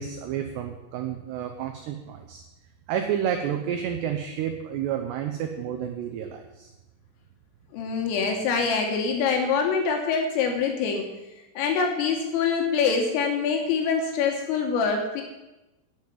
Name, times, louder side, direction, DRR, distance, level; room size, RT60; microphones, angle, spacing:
voice 1, 0.0-2.4 2.9-6.7, right 9 dB, 85° right, 5 dB, 2.4 m, -30 dB
voice 2, 7.7-11.1 11.6-15.2, left 5 dB, 80° left, 2 dB, 3.7 m, -25 dB
9.2 x 7.6 x 9.3 m, 1.0 s
omnidirectional pair, 5.9 m